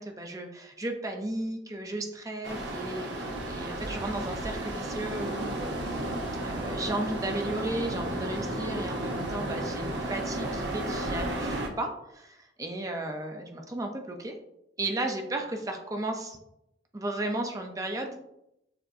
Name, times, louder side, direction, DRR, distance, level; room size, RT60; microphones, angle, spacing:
voice 1, 0.0-6.2 6.4-14.4 14.8-16.4 16.9-18.2, right 1 dB, 20° right, 3 dB, 0.6 m, -34 dB
sound 1, 2.4-11.7, right 1 dB, 80° right, 0.9 m, -33 dB
6.8 x 3.0 x 2.6 m, 0.81 s
head